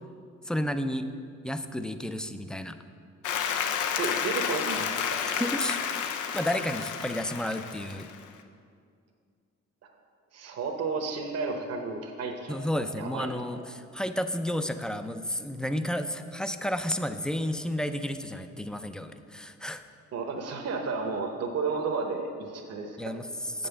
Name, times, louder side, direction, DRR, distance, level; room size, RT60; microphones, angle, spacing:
voice 1, 0.4-1.1 1.4-2.8 5.4-5.8 6.3-8.1 12.5-19.8 23.0-23.7, left 1 dB, 5° left, 9 dB, 0.4 m, -31 dB
Applause, 3.2-8.3, left 7 dB, 85° left, 0.7 m, -31 dB
voice 2, 3.9-5.2 10.3-13.6 20.1-23.0 23.6-23.7, right 4 dB, 55° right, 3 dB, 0.9 m, -33 dB
7.5 x 5.5 x 6.9 m, 2.3 s
cardioid pair, 90°, 30 cm